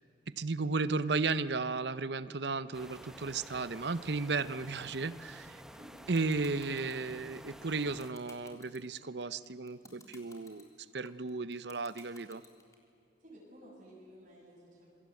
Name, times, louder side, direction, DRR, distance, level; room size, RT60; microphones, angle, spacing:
voice 1, 0.3-5.6 6.1-10.7 10.9-12.4, right 3 dB, 70° right, 15 dB, 0.8 m, -34 dB
sound 1, 2.7-8.1, equal, 5° right, 0.9 m, -51 dB
sound 2, 5.8-12.7, left 3 dB, 20° left, 3.5 m, -55 dB
voice 2, 13.2-14.9, equal, 50° right, -4 dB, 7.1 m, -54 dB
27.5 x 24.0 x 8.4 m, 2.6 s
head